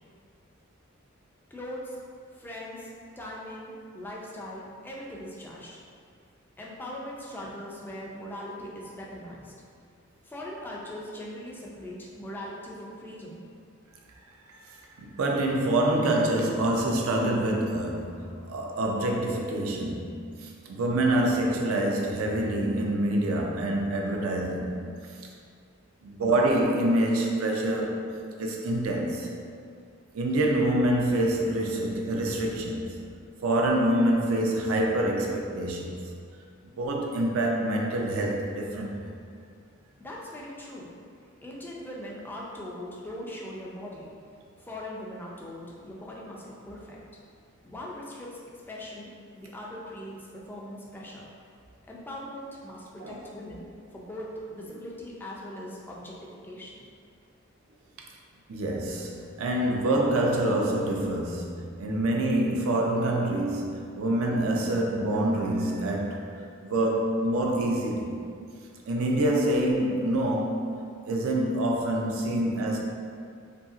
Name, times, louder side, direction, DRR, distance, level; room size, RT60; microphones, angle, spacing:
voice 1, 1.5-2.0 2.3-5.8 6.6-9.5 10.2-13.5 40.0-40.9 41.4-44.1 44.6-47.0 47.6-48.4 48.7-51.3 51.9-56.9, left 1 dB, 10° left, -4 dB, 0.3 m, -40 dB
voice 2, 14.7-24.9 26.0-29.3 30.1-33.0 33.4-36.1 36.8-39.1 53.0-53.2 58.5-66.3 66.6-68.2 68.9-70.8 71.1-72.8, right 1 dB, 85° right, 0 dB, 0.4 m, -26 dB
2.7 x 2.6 x 2.4 m, 2.3 s
head